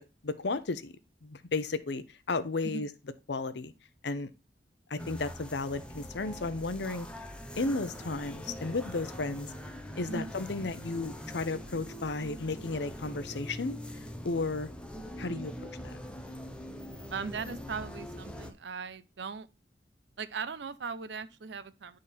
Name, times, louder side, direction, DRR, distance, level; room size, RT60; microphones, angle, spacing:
voice 1, 0.2-0.9 1.2-2.9 3.3-3.7 4.0-4.3 4.9-7.1 7.6-9.5 10.0-13.8 14.2-14.7 15.2-15.5 15.8-15.9, left 3 dB, 70° left, 0.7 m, -33 dB
sound 1, 5.0-18.5, equal, 5° left, 0.7 m, -43 dB
voice 2, 17.1-19.5 20.2-22.0, right 5 dB, 70° right, 0.6 m, -39 dB
10.0 x 3.8 x 4.2 m
head